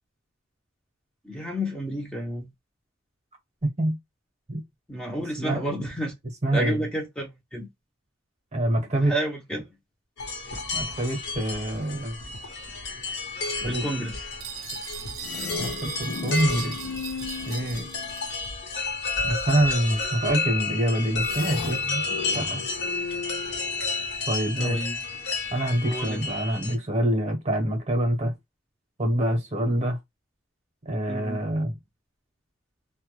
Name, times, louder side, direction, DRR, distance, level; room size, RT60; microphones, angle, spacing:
voice 1, 1.2-2.5 4.9-6.1 6.5-7.7 9.0-9.7 13.6-14.2 24.6-25.0 25.8-26.2 26.5-26.6 31.1-31.4, right 1 dB, 5° left, 0.5 m, -31 dB
voice 2, 3.6-4.0 4.5-4.6 5.4-5.6 6.4-6.8 8.5-9.1 9.5-9.6 10.7-12.2 13.6-13.8 15.6-16.8 17.5-17.9 19.2-22.0 22.3-22.6 24.3-24.8 25.5-28.3 29.0-30.0 30.8-31.7, right 1 dB, 35° right, 0.7 m, -26 dB
sound 1, 10.2-26.7, left 3 dB, 60° left, 0.8 m, -31 dB
sound 2, 14.4-18.5, right 11 dB, 75° right, 0.4 m, -40 dB
sound 3, 15.2-18.4 21.2-24.4, left 5 dB, 90° left, 0.4 m, -37 dB
2.1 x 2.1 x 2.9 m
head